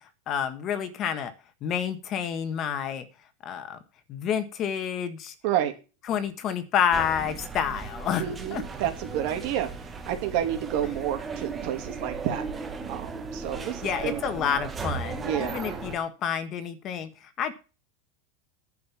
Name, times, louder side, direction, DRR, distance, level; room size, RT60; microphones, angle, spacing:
voice 1, 0.3-1.3 1.6-3.0 3.4-3.8 4.1-5.3 6.1-8.6 13.8-17.1 17.4-17.5, left 8 dB, 35° left, 10 dB, 1.6 m, -29 dB
sound 1, 6.9-16.0, right 4 dB, 15° right, 1.5 m, -36 dB
voice 2, 8.2-9.7 10.1-12.4 12.9-14.2 15.2-15.6, right 11 dB, 55° right, 6 dB, 2.7 m, -29 dB
10.5 x 6.8 x 7.1 m, 0.32 s
supercardioid pair, 150°, 0 cm